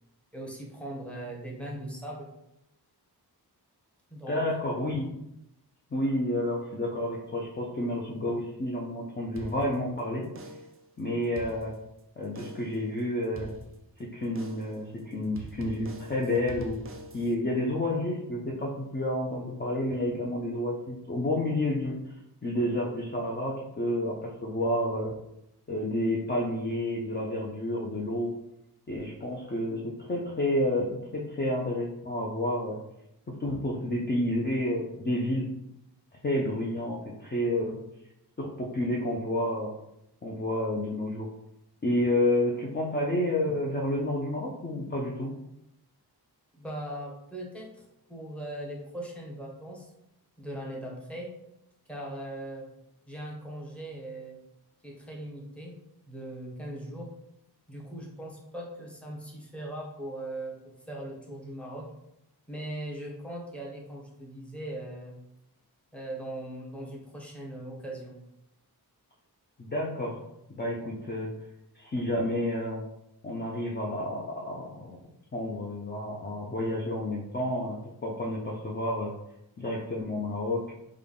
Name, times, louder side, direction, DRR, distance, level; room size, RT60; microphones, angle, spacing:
voice 1, 0.3-2.3 4.1-4.4 46.5-49.9 50.4-51.3 51.9-52.7 53.1-54.4 54.8-55.7 56.1-57.1 57.7-61.9 62.5-65.2 65.9-68.2, right 1 dB, 5° left, -3 dB, 0.8 m, -39 dB
voice 2, 4.3-5.1 5.9-10.3 11.0-11.8 12.2-13.5 14.0-16.8 17.1-22.0 22.4-25.1 25.7-28.3 28.9-32.8 33.3-35.5 36.2-37.8 38.4-39.7 40.2-41.3 41.8-45.3 69.6-70.2 70.5-71.3 71.8-72.8 73.2-75.0 75.3-79.1 79.6-80.7, left 1 dB, 25° left, -3 dB, 0.5 m, -30 dB
sound 1, 9.4-10.0 10.4-10.9 11.2-12.0 12.4-12.8 13.4-14.0 14.4-14.8 15.4-17.4, right 2 dB, 35° right, 0.4 m, -44 dB
3.4 x 2.2 x 3.7 m, 0.83 s
wide cardioid pair, 90°, 40 cm